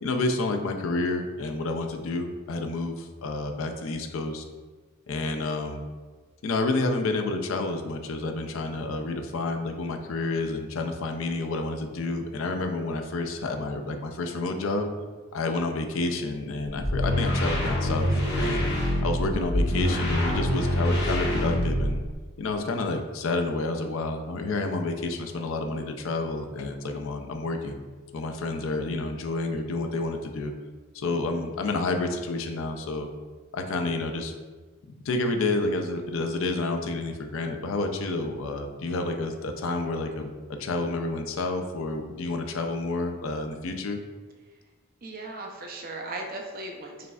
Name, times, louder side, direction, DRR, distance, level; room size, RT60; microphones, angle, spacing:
voice 1, 0.0-4.4 5.1-5.8 6.4-14.9 15.3-18.7 19.0-22.0 22.4-27.8 28.1-30.5 30.9-33.1 33.5-34.3 35.0-44.0, left 2 dB, 70° left, 5 dB, 0.4 m, -29 dB
sound 1, 16.8-22.1, equal, 50° left, 0.9 m, -25 dB
voice 2, 45.0-47.1, right 2 dB, 45° right, 1 dB, 0.5 m, -37 dB
4.9 x 3.2 x 2.3 m, 1.4 s
head